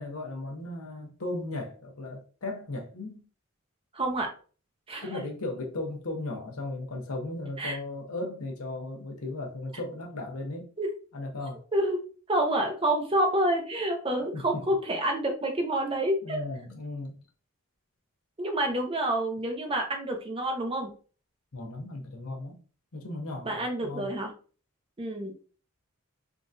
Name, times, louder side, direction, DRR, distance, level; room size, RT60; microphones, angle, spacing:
voice 1, 0.0-3.2 5.0-10.7 11.1-11.6 14.3-14.6 16.2-17.2 21.5-22.6 22.9-24.1, left 2 dB, 80° left, 0.9 m, -36 dB
voice 2, 3.9-4.3 4.9-5.2 7.6-7.8 10.8-10.9 11.7-12.0 12.3-16.4 18.4-20.9 23.4-24.3 25.0-25.3, right 1 dB, 25° right, 0.6 m, -28 dB
3.7 x 2.4 x 2.6 m
head